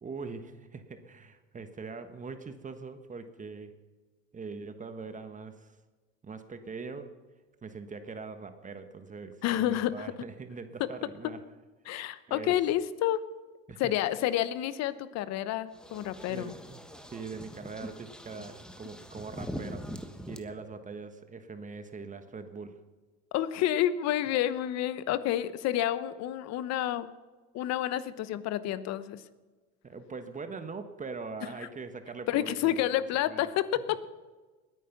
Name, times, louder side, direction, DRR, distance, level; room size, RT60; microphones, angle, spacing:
voice 1, 0.0-3.8 4.3-5.8 6.2-7.2 7.6-11.4 12.3-12.6 13.7-14.2 16.3-19.9 20.3-22.8 29.8-33.5 33.9-34.0, right 4 dB, 25° right, 8 dB, 1.3 m, -42 dB
voice 2, 9.4-10.1 11.9-13.2 13.8-16.5 23.3-27.1 27.5-29.2 32.3-34.1, left 12 dB, 60° left, 15 dB, 1.0 m, -29 dB
sound 1, 15.7-20.4, equal, 5° left, 1.3 m, -43 dB
20.0 x 9.4 x 6.0 m, 1.3 s
supercardioid pair, 90°, 29 cm